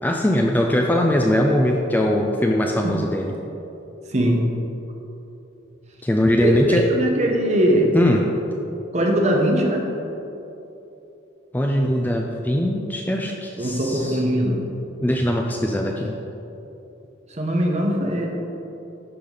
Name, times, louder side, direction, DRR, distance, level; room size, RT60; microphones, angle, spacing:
voice 1, 0.0-3.3 6.0-6.9 7.9-8.2 11.5-14.2 15.0-16.2, left 1 dB, 10° left, 1 dB, 0.4 m, -21 dB
voice 2, 4.1-4.5 6.4-8.0 8.9-9.9 13.6-14.7 17.3-18.3, equal, 35° right, 1 dB, 0.9 m, -21 dB
11.5 x 5.1 x 3.9 m, 2.9 s
head